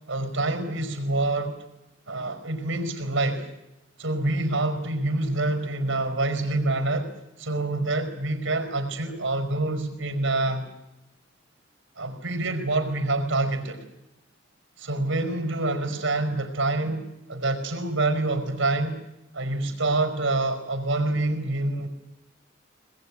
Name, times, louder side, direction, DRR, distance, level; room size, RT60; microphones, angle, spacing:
voice 1, 0.1-1.6 2.1-3.5 4.0-7.1 7.4-10.7 12.0-13.8 14.8-19.0 19.3-21.9, right 2 dB, 90° right, 7 dB, 5.0 m, -26 dB
22.0 x 21.0 x 9.8 m, 0.94 s
head